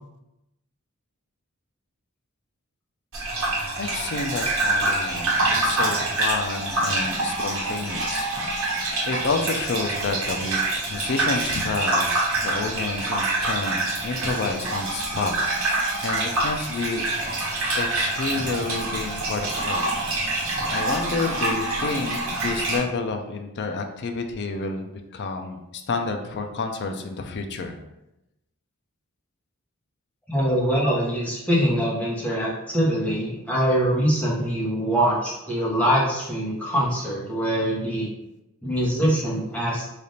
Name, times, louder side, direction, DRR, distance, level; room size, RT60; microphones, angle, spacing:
Gurgling / Bathtub (filling or washing), 3.1-22.8, right 2 dB, 65° right, 1.1 m, -26 dB
voice 1, 3.8-5.4 5.6-8.7 9.1-10.6 10.9-17.0 17.7-19.9 20.7-27.8, left 3 dB, 50° left, 5 dB, 0.4 m, -29 dB
voice 2, 30.3-38.1 38.6-39.8, equal, 5° left, -6 dB, 1.0 m, -23 dB
3.3 x 2.5 x 4.1 m, 0.91 s
head